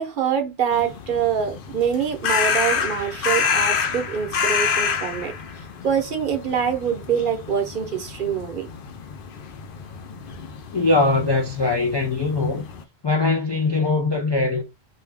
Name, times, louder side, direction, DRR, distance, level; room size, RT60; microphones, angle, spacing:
voice 1, 0.0-5.3 5.8-8.7, right 7 dB, 55° right, 0.8 m, -25 dB
sound 1, 0.7-12.8, left 6 dB, 60° left, 0.7 m, -28 dB
voice 2, 10.7-12.6 13.0-14.6, left 3 dB, 40° left, 0.3 m, -21 dB
2.7 x 2.2 x 3.4 m
omnidirectional pair, 1.1 m